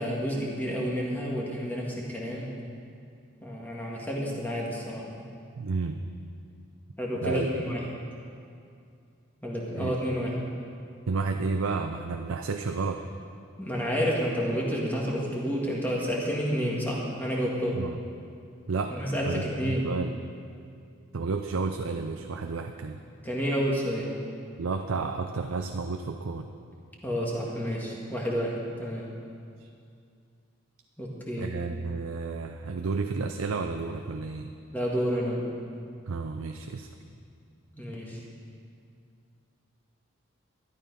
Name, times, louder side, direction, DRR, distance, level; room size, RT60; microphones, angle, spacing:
voice 1, 0.0-2.5 3.4-5.3 7.0-7.8 9.4-10.4 13.6-17.7 18.9-19.9 23.2-24.1 27.0-29.1 31.0-31.5 34.7-35.4 37.7-38.2, equal, 10° left, -4 dB, 1.7 m, -30 dB
voice 2, 5.5-6.0 7.2-7.5 9.7-10.0 11.1-13.0 17.7-18.0 18.7-19.0 19.3-20.1 21.1-23.0 24.6-26.5 29.6-29.7 31.4-34.5 36.1-36.9, right 4 dB, 85° right, 5 dB, 0.6 m, -31 dB
12.5 x 11.5 x 5.3 m, 2.4 s
head